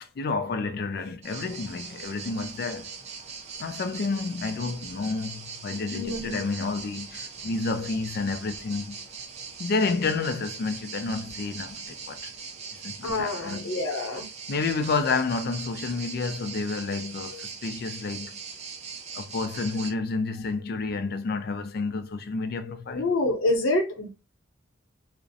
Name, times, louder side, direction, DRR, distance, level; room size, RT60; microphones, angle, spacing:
voice 1, 0.0-2.9 3.6-9.0 9.6-12.3 12.8-13.7 14.5-18.4 19.1-23.0, left 4 dB, 50° left, 0.3 m, -30 dB
sound 1, 1.2-19.9, right 5 dB, 35° right, 0.4 m, -40 dB
voice 2, 5.9-6.4 13.0-14.3 22.9-24.1, left 2 dB, 85° left, 0.7 m, -27 dB
2.4 x 2.0 x 2.6 m
head